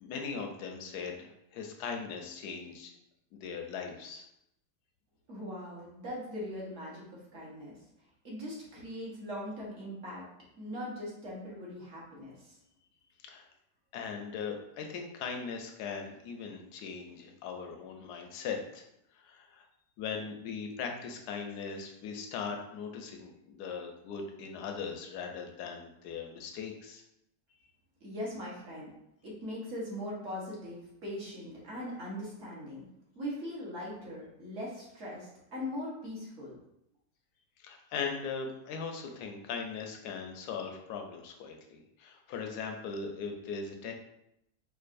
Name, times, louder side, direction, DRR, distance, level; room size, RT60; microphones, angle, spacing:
voice 1, 0.0-2.9 3.3-4.2 13.2-13.4 13.9-18.8 19.1-19.6 20.0-27.0 37.6-43.9, left 5 dB, 75° left, 3 dB, 1.1 m, -39 dB
voice 2, 5.3-7.8 8.2-10.3 10.6-12.6 28.0-28.9 29.2-32.9 33.1-36.5, left 1 dB, 50° right, -6 dB, 1.3 m, -40 dB
4.6 x 2.4 x 2.5 m, 0.80 s
omnidirectional pair, 1.8 m